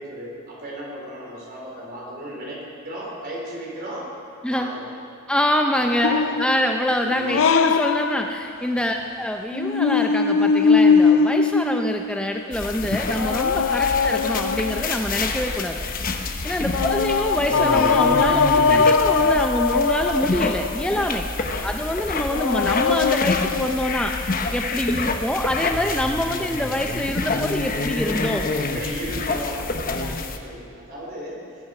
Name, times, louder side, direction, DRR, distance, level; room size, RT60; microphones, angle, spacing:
voice 1, 0.0-4.1 4.4-4.9 5.8-6.3 7.0-7.5 9.0-9.2 13.9-14.1 16.7-17.0 21.5-21.8 25.0-25.2 28.5-31.4, equal, 50° right, -3 dB, 3.9 m, -36 dB
voice 2, 5.3-15.9 16.4-21.3 21.6-28.5 30.0-30.2, equal, 5° left, 3 dB, 0.5 m, -25 dB
sound 1, 6.0-8.7 9.5-12.5 13.1-15.3 16.7-20.8 22.3-24.3, left 5 dB, 80° left, 0.5 m, -21 dB
sound 2, 12.5-30.4, left 3 dB, 45° left, 0.9 m, -28 dB
20.5 x 9.7 x 4.9 m, 2.4 s
head